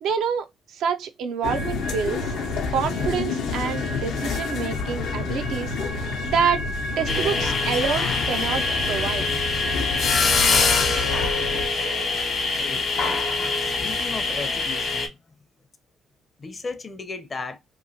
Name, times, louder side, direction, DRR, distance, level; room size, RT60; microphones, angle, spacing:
voice 1, 0.0-2.3 2.7-5.7 6.2-6.7 7.0-9.3, right 6 dB, 80° right, 0.4 m, -27 dB
sound 1, 1.4-11.7, left 3 dB, 85° left, 0.6 m, -29 dB
sound 2, 7.1-15.1, left 4 dB, 60° left, 0.9 m, -24 dB
voice 2, 12.5-15.2 16.4-17.6, left 4 dB, 35° left, 0.5 m, -36 dB
2.9 x 2.7 x 2.7 m
cardioid pair, 90°, 0 cm